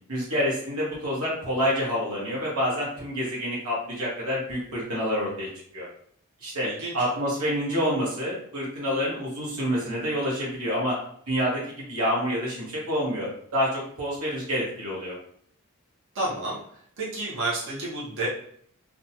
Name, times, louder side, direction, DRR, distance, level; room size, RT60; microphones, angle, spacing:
voice 1, 0.1-5.5 5.7-5.9 6.4-11.0 11.3-15.2, equal, 80° right, -6 dB, 1.1 m, -28 dB
voice 2, 6.6-7.1 16.1-16.6 17.0-18.3, right 2 dB, 60° right, -5 dB, 0.8 m, -30 dB
2.6 x 2.2 x 2.8 m, 0.63 s
head